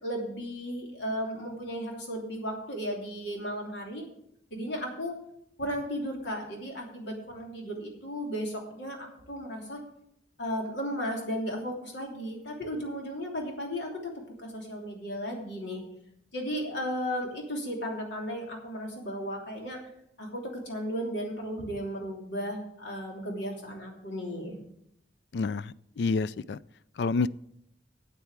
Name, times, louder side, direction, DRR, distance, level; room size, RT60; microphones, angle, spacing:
voice 1, 0.0-4.0 4.5-5.2 5.6-9.8 10.4-14.1 14.4-15.8 16.3-19.8 20.2-24.6, equal, 85° left, 0 dB, 3.0 m, -35 dB
voice 2, 25.3-26.6 27.0-27.3, left 4 dB, 70° left, 18 dB, 0.4 m, -28 dB
8.3 x 8.2 x 7.4 m, 0.75 s
head